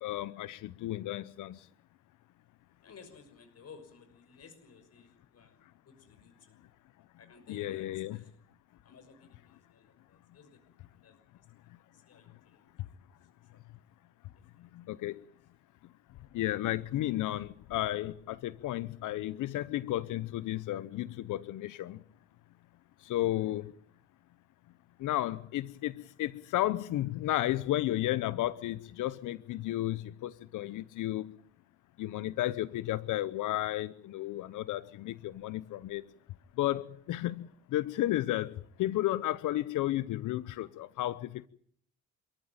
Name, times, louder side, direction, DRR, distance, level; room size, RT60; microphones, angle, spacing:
voice 1, 0.0-1.6 7.5-8.2 14.7-15.2 16.3-22.0 23.0-23.7 25.0-31.3 32.0-36.0 36.6-41.5, left 14 dB, 75° left, 17 dB, 0.9 m, -33 dB
voice 2, 2.8-6.6 7.2-8.4 8.8-11.2 11.6-12.7 13.5-13.6 14.5-14.7 15.1-15.2, left 5 dB, 50° left, 9 dB, 6.2 m, -57 dB
27.5 x 14.0 x 9.0 m, 0.62 s
supercardioid pair, 75°, 31 cm